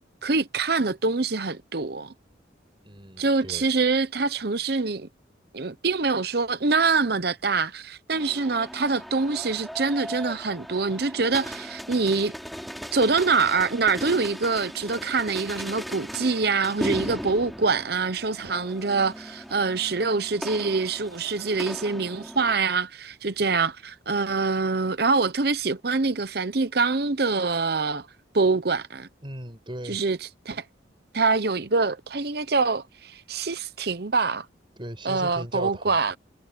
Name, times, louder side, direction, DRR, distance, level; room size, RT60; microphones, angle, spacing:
voice 1, 0.2-2.1 3.2-5.1 5.5-12.3 12.9-28.1 28.3-29.1 29.9-30.2 30.5-30.6 31.1-34.5 35.0-36.2, right 4 dB, 55° right, 0.9 m, -25 dB
voice 2, 2.8-3.7 29.2-30.0 34.8-36.0, right 1 dB, 25° right, 6.4 m, -37 dB
sound 1, 8.1-22.6, equal, ahead, 5.4 m, -38 dB
head